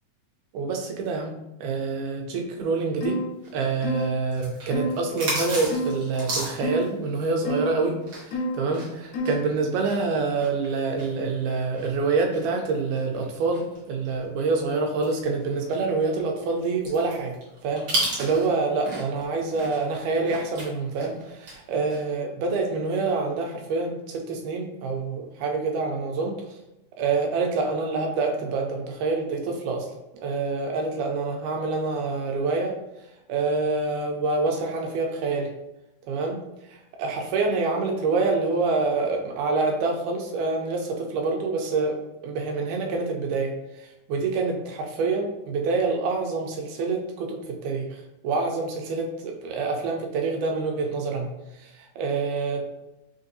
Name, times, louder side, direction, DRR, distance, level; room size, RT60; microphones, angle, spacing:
voice 1, 0.5-3.2 3.5-17.4 17.6-26.4 27.0-29.9 30.1-32.7 33.3-35.5 36.1-36.4 37.0-43.6 44.1-51.3 51.6-51.7 52.0-52.6, right 4 dB, 85° right, 2 dB, 2.1 m, -26 dB
sound 1, 3.0-3.3 3.8-4.1 4.7-4.9 5.7-6.0 6.6-6.9 7.4-7.7 8.3-8.6 9.1-9.4, left 1 dB, 90° left, 2.3 m, -28 dB
sound 2, 3.4-8.4 8.7-14.2 14.6-14.7 15.0-19.2 19.5-21.5 21.8-22.1, right 1 dB, 55° right, 1.6 m, -34 dB
5.2 x 2.5 x 2.7 m, 0.91 s
omnidirectional pair, 3.6 m